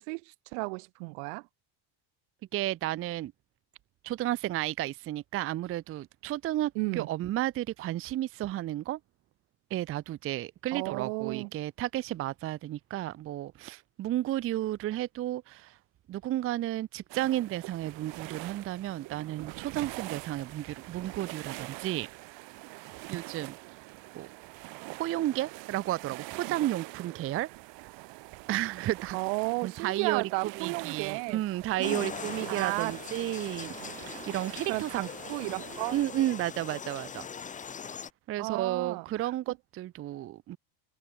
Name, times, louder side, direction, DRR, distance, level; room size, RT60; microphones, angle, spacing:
voice 1, 0.0-1.5 6.7-7.1 10.7-11.5 29.1-31.4 31.8-32.0 32.5-32.9 34.7-36.0 38.4-39.6, right 39 dB, 85° right, 3.4 m, -33 dB
voice 2, 2.5-3.3 4.0-9.0 9.7-15.8 16.1-22.1 23.1-23.8 24.1-24.3 25.0-27.5 28.5-29.2 29.6-30.3 30.6-33.7 34.1-35.1 35.4-35.6 35.9-37.2 38.3-40.6, right 14 dB, 30° right, 0.5 m, -32 dB
sound 1, 17.1-36.0, right 24 dB, 65° right, 2.6 m, -44 dB
sound 2, 31.8-38.1, left 7 dB, 15° left, 0.7 m, -41 dB
cardioid pair, 150°, 47 cm